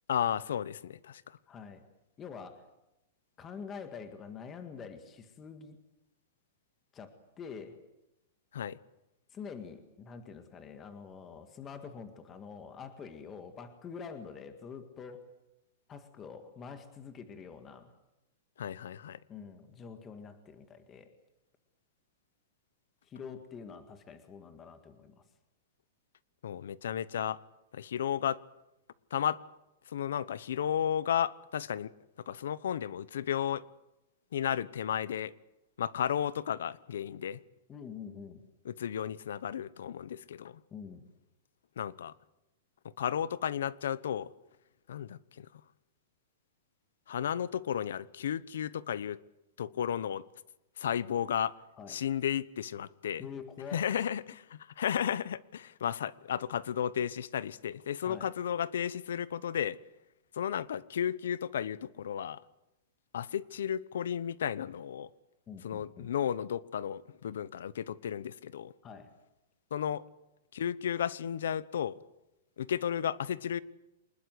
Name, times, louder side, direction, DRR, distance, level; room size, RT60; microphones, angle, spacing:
voice 1, 0.1-1.2 8.5-8.8 18.6-19.2 26.4-27.4 27.7-28.4 29.1-29.4 29.9-31.9 32.3-33.6 34.3-35.3 35.8-37.4 38.6-40.6 41.8-42.1 43.0-44.3 44.9-45.5 47.1-49.2 49.6-50.2 50.8-51.6 51.9-53.3 53.7-59.8 60.4-62.4 63.1-65.1 65.6-68.7 69.7-70.0 70.5-72.0 72.6-73.6, left 9 dB, 80° left, 19 dB, 1.0 m, -33 dB
voice 2, 1.5-1.8 2.2-2.6 3.4-5.8 6.9-7.8 9.3-15.3 15.9-17.9 19.3-21.1 23.1-25.2 37.7-38.4 40.7-41.0 51.8-52.0 53.2-54.1 58.0-58.3 65.5-66.1 68.8-69.1, left 6 dB, 15° left, 7 dB, 1.9 m, -46 dB
26.0 x 20.5 x 8.0 m, 0.93 s
supercardioid pair, 170°, 0 cm